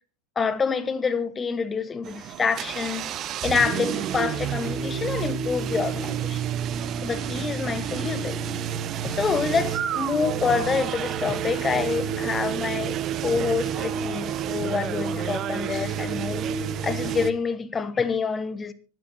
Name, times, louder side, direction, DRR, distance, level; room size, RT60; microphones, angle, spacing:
voice 1, 0.4-3.1 3.4-6.4 7.0-8.5 9.0-16.5 16.8-18.7, left 5 dB, 15° left, 1.1 m, -27 dB
sound 1, 2.0-17.3, right 8 dB, 30° right, 1.1 m, -29 dB
24.5 x 12.5 x 2.8 m
figure-of-eight pair, 90°, 0 cm